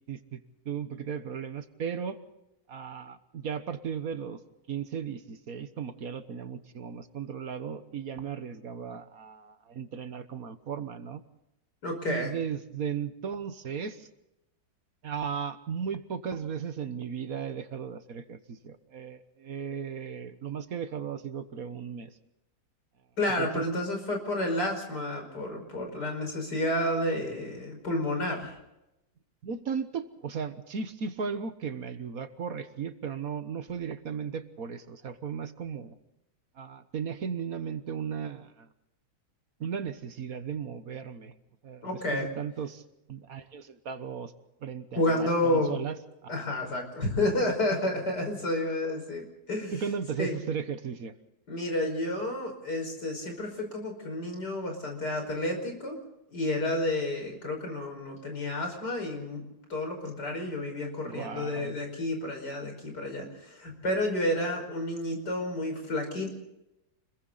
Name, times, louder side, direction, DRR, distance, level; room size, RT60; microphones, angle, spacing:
voice 1, 0.1-2.2 2.7-4.4 4.7-11.2 12.1-14.1 15.0-22.1 23.4-23.6 29.4-35.9 36.6-38.7 39.6-41.3 41.6-42.8 43.1-44.3 44.6-46.3 49.7-51.1 61.0-61.7, right 7 dB, 60° right, 10 dB, 1.6 m, -36 dB
voice 2, 11.8-12.3 23.2-28.6 41.8-42.3 45.0-45.7 46.3-49.8 50.2-50.4 51.5-56.0 56.3-59.4 59.7-66.3, left 1 dB, 80° left, 3 dB, 6.0 m, -30 dB
29.5 x 22.0 x 4.1 m, 0.90 s
omnidirectional pair, 1.8 m